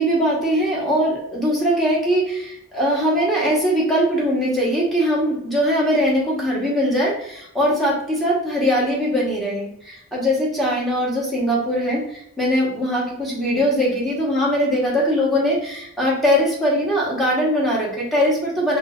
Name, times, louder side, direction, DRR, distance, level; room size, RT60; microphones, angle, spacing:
voice 1, 0.0-18.8, equal, ahead, -6 dB, 1.1 m, -21 dB
3.7 x 2.7 x 2.4 m, 0.72 s
head